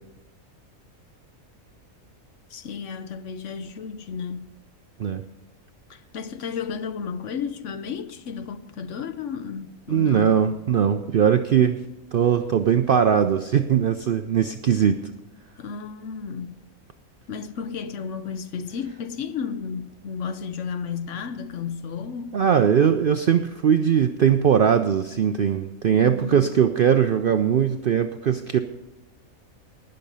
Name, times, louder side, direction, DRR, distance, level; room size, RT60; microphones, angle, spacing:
voice 1, 2.5-4.4 5.9-10.4 15.6-16.6 17.3-22.4 25.9-26.5, left 6 dB, 60° left, 1.0 m, -33 dB
voice 2, 9.9-11.8 12.1-15.0 22.3-28.6, right 8 dB, 65° right, 0.5 m, -20 dB
19.0 x 6.7 x 5.4 m
omnidirectional pair, 1.5 m